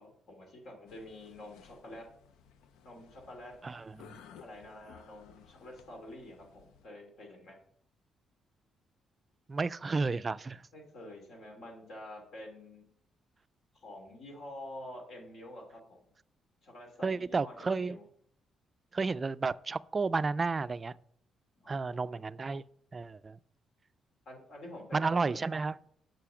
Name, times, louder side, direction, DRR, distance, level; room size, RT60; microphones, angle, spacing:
voice 1, 0.0-2.1 2.8-3.6 4.4-7.6 10.7-12.9 13.7-16.0 16.6-18.0 21.6-22.2 24.2-25.5, left 1 dB, 70° left, 3.0 m, -48 dB
sound 1, 0.9-6.9, left 7 dB, 90° left, 0.5 m, -58 dB
voice 2, 3.6-4.2 9.5-10.6 17.0-18.0 18.9-20.9 21.7-22.6 22.9-23.4 24.9-25.8, right 4 dB, 30° right, 0.3 m, -32 dB
7.7 x 6.8 x 5.8 m
cardioid pair, 90°, 0 cm